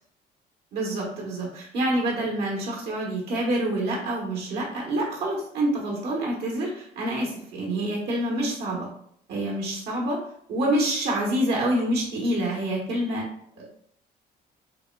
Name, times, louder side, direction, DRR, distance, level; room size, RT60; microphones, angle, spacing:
voice 1, 0.7-8.9 9.3-10.2 10.5-13.2 13.6-13.7, right 1 dB, 75° right, -2 dB, 1.3 m, -27 dB
6.5 x 2.2 x 2.3 m, 0.68 s
cardioid pair, 110°, 17 cm